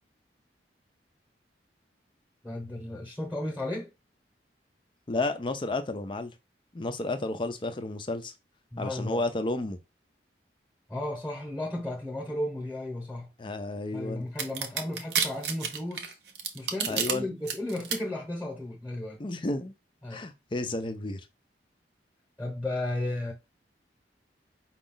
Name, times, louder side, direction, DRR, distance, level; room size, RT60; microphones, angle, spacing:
voice 1, 2.4-3.9 8.7-9.3 10.9-13.3 13.9-16.2 16.5-19.2 20.0-20.2 22.4-23.3, left 1 dB, 5° left, 1.0 m, -34 dB
voice 2, 5.1-6.3 6.7-8.3 8.8-9.8 13.4-14.3 16.9-17.3 19.2-19.7 20.1-21.2, left 2 dB, 30° left, 0.5 m, -32 dB
sound 1, 14.4-17.1 17.5-18.0, right 7 dB, 70° right, 0.8 m, -29 dB
5.1 x 2.4 x 3.8 m
head